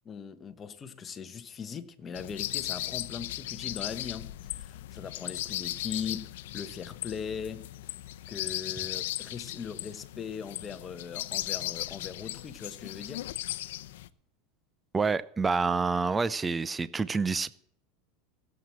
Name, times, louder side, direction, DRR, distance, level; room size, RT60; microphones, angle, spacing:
voice 1, 0.0-7.7 8.3-13.2, left 6 dB, 20° left, 1.1 m, -40 dB
sound 1, 2.1-14.1, left 15 dB, 80° left, 0.7 m, -37 dB
voice 2, 14.9-17.5, right 4 dB, 15° right, 0.5 m, -28 dB
16.5 x 7.7 x 7.4 m
supercardioid pair, 150°, 0 cm